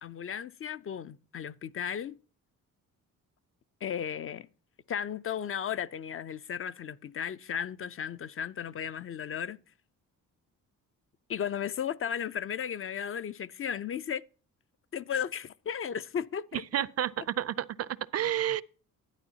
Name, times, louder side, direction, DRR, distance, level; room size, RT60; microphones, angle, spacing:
voice 1, 0.0-2.2 3.8-4.5 4.9-9.6 11.3-14.2 14.9-16.6, left 8 dB, 40° left, 0.4 m, -35 dB
voice 2, 16.5-18.6, right 11 dB, 45° right, 0.4 m, -31 dB
11.5 x 9.6 x 2.8 m
cardioid pair, 85°, 34 cm